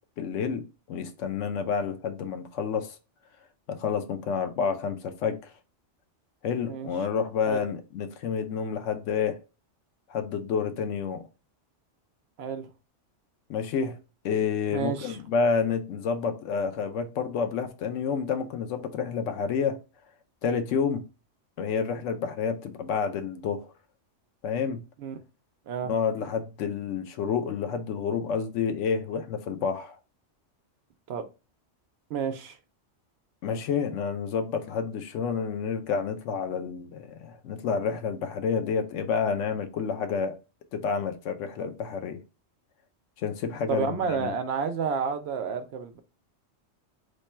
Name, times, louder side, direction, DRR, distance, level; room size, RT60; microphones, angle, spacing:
voice 1, 0.2-3.0 3.7-5.4 6.4-9.4 10.1-11.2 13.5-14.0 14.2-19.8 20.4-21.0 21.6-23.7 24.4-24.8 25.8-29.9 33.4-40.4 40.7-42.2 43.2-44.3, left 6 dB, 85° left, 1.0 m, -29 dB
voice 2, 14.7-15.2 25.0-25.1 25.7-25.9 31.1-31.3 32.1-32.6 43.7-46.0, right 6 dB, 70° right, 0.8 m, -30 dB
3.2 x 2.2 x 4.1 m
omnidirectional pair, 1.2 m